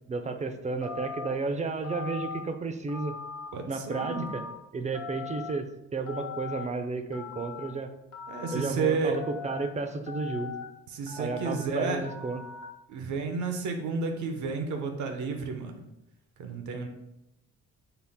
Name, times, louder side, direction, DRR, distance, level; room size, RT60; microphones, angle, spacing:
voice 1, 0.1-3.1 3.7-4.4 4.7-7.9 8.5-10.5 11.2-12.4, right 4 dB, 25° right, 8 dB, 0.4 m, -32 dB
Telephone, 0.8-1.3 1.8-2.4 2.9-3.5 3.9-4.5 4.9-5.5 6.1-6.6 7.1-7.7 8.1-8.6 9.1-9.7 10.1-10.6 11.1-11.6 12.0-12.6, left 5 dB, 75° left, 1.0 m, -40 dB
voice 2, 3.5-4.3 8.3-9.2 10.9-12.0 12.9-15.9 16.4-16.9, right 4 dB, 75° right, 5 dB, 0.7 m, -31 dB
5.7 x 2.0 x 3.5 m, 0.90 s
cardioid pair, 90°, 30 cm